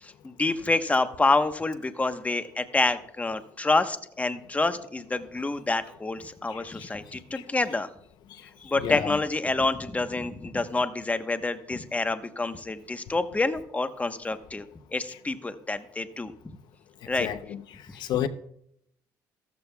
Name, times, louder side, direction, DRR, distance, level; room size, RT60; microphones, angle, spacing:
voice 1, 0.0-7.9 8.6-14.6 14.9-16.3 17.1-17.3, left 3 dB, 20° left, 1.1 m, -27 dB
voice 2, 8.8-9.2 17.2-17.6 17.9-18.3, left 11 dB, 70° left, 0.7 m, -30 dB
14.5 x 14.0 x 2.3 m
supercardioid pair, 75°, 8 cm